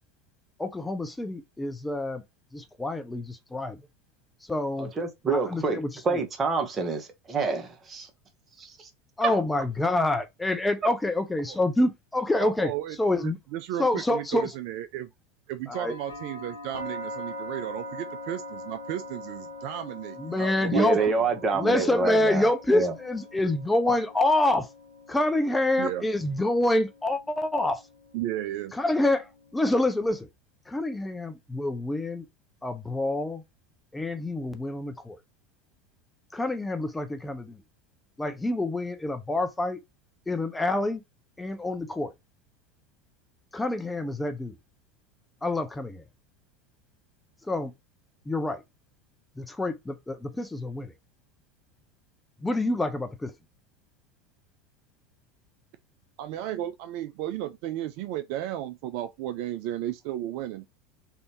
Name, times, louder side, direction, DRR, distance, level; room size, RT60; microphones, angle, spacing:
voice 1, 0.6-2.2 2.5-3.8 4.4-4.9 5.3-6.2 9.2-12.7 13.0-13.4 13.8-14.5 15.7-16.0 20.2-21.0 21.5-24.7 25.1-27.8 28.7-30.3 30.7-32.2 32.6-33.4 33.9-35.2 36.3-37.6 38.2-39.8 40.3-41.0 41.4-42.1 43.5-44.6 45.4-46.0 47.5-47.7 48.3-48.6 49.4-50.9 52.4-53.3, left 2 dB, 10° left, 0.5 m, -27 dB
voice 2, 4.8-5.8 6.0-8.1 8.6-8.9 9.2-9.3 20.7-22.9 23.9-24.0, right 4 dB, 25° right, 1.1 m, -27 dB
voice 3, 12.4-13.0 13.2-15.1 15.5-21.1 25.8-26.0 28.1-28.7 56.2-60.6, right 12 dB, 50° right, 0.3 m, -34 dB
sound 1, 15.7-29.6, left 1 dB, 75° left, 0.7 m, -43 dB
3.4 x 2.6 x 3.0 m
figure-of-eight pair, 75°, 0 cm